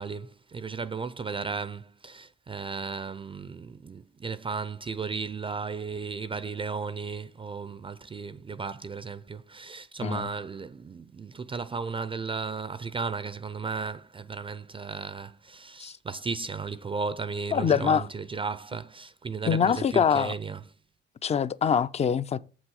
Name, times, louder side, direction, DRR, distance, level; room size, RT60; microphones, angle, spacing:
voice 1, 0.0-20.6, right 5 dB, 25° right, 0.4 m, -35 dB
voice 2, 17.5-18.0 19.5-20.3 21.2-22.4, left 7 dB, 35° left, 0.4 m, -24 dB
7.2 x 6.2 x 4.8 m
cardioid pair, 90°, 20 cm